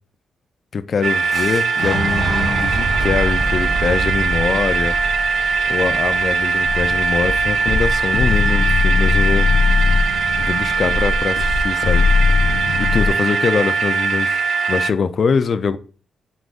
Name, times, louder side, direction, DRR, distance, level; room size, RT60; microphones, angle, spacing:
voice 1, 0.7-5.0 5.7-9.5 10.4-12.0 12.8-15.8, left 5 dB, 50° left, 0.4 m, -22 dB
sound 1, 1.0-14.9, right 5 dB, 65° right, 0.3 m, -20 dB
Boom, 1.3-7.2, right 1 dB, 10° right, 1.6 m, -26 dB
sound 2, 6.6-13.1, left 4 dB, 90° left, 0.6 m, -19 dB
4.8 x 3.8 x 2.4 m
cardioid pair, 115°, 0 cm